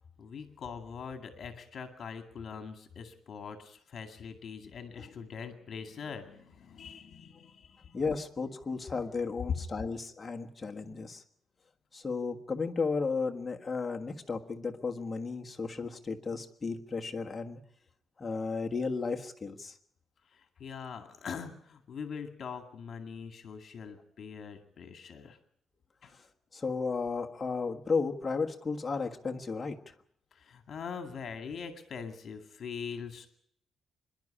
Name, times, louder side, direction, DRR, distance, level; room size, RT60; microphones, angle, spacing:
voice 1, 0.2-8.0 20.3-25.4 26.0-26.1 30.3-33.3, left 6 dB, 45° left, 7 dB, 2.2 m, -43 dB
voice 2, 7.9-11.2 11.9-17.6 18.2-19.7 26.5-29.8, left 4 dB, 20° left, 3 dB, 1.4 m, -34 dB
25.5 x 11.0 x 10.0 m, 0.68 s
cardioid pair, 160°, 0 cm